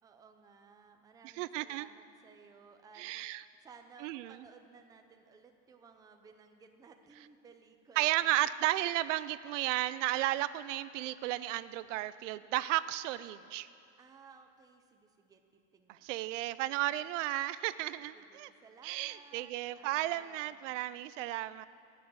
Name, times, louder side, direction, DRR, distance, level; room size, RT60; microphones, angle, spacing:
voice 1, 0.0-8.4 14.0-16.4 16.7-16.8 18.1-20.8, right 5 dB, 10° right, 5 dB, 0.5 m, -58 dB
voice 2, 1.4-1.9 3.0-3.4 4.0-4.4 8.0-13.7 15.9-18.5 18.8-21.7, right 15 dB, 75° right, 16 dB, 0.5 m, -33 dB
16.0 x 6.2 x 9.4 m, 2.5 s
supercardioid pair, 155°, 37 cm